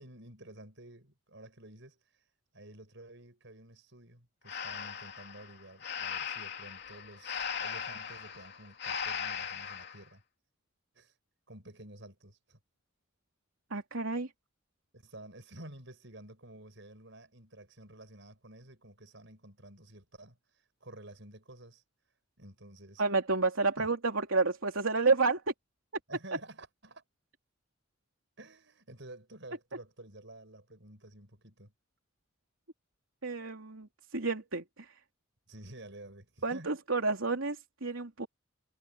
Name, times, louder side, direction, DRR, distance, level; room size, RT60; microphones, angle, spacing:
voice 1, 0.0-2.2 2.5-10.2 10.9-11.1 11.5-12.6 14.9-21.8 22.4-23.0 23.8-23.9 26.1-27.0 28.4-31.7 35.5-36.8, right 1 dB, 60° right, 7.4 m, -51 dB
Breathing, 4.5-10.0, left 7 dB, 55° left, 3.0 m, -38 dB
voice 2, 13.7-14.3 23.0-25.4 33.2-34.9 36.4-38.3, right 3 dB, 85° right, 3.1 m, -30 dB
head